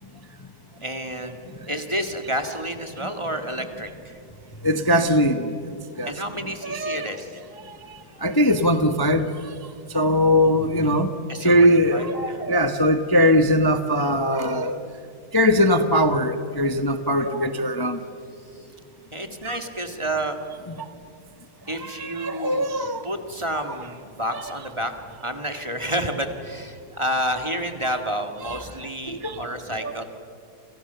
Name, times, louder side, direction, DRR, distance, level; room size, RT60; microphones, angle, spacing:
voice 1, 0.8-1.4 1.7-4.2 6.1-7.4 11.3-12.5 19.1-20.4 21.7-22.7 23.0-24.9 25.2-30.0, right 1 dB, 15° right, 6 dB, 1.8 m, -30 dB
voice 2, 4.6-5.6 6.0-7.1 7.7-9.5 9.9-11.1 11.4-14.8 15.3-18.0 19.4-19.6 20.7-20.9 21.7-23.0 23.5-23.6 24.3-24.7 27.8-28.0 28.4-28.6 29.1-29.5 29.8-30.0, equal, 20° left, 8 dB, 0.7 m, -21 dB
29.5 x 28.5 x 6.9 m, 2.3 s
omnidirectional pair, 2.4 m